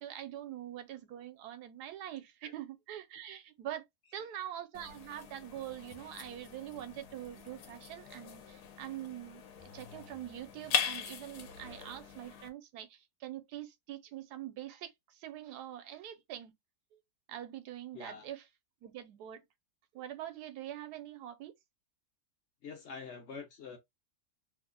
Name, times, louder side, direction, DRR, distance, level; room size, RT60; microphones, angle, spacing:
voice 1, 0.0-3.9 4.1-9.4 9.7-16.5 16.9-17.0 17.3-18.5 18.8-19.4 19.9-21.5, right 12 dB, 85° right, 1.2 m, -44 dB
sound 1, 4.7-12.5, left 8 dB, 75° left, 1.3 m, -40 dB
voice 2, 17.9-18.3 22.6-23.8, left 5 dB, 60° left, 0.8 m, -45 dB
3.0 x 2.0 x 3.6 m
omnidirectional pair, 1.7 m